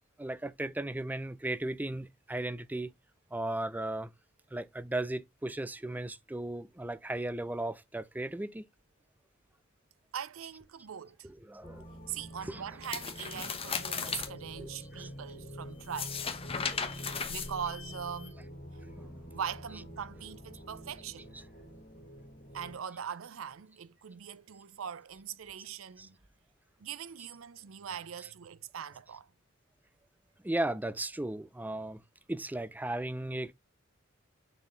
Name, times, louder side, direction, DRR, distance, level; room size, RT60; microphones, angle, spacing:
voice 1, 0.2-2.9 3.3-4.1 4.5-8.7 11.2-11.9 12.4-12.8 13.3-13.6 14.0-14.2 14.6-15.1 15.4-15.7 16.5-16.8 19.0-19.2 21.2-21.5 26.0-26.1 30.4-32.0 32.3-33.5, right 1 dB, 10° right, 0.4 m, -36 dB
voice 2, 10.1-11.2 12.1-16.2 16.9-18.4 19.3-21.3 22.5-26.2 26.8-29.3, right 8 dB, 75° right, 0.5 m, -41 dB
sound 1, 11.6-22.8, equal, 45° left, 2.9 m, -47 dB
sound 2, 12.8-14.3 15.8-18.1, left 6 dB, 25° left, 0.9 m, -36 dB
sound 3, 14.7-15.2 15.7-18.3, left 9 dB, 65° left, 1.4 m, -55 dB
6.7 x 4.0 x 3.7 m
head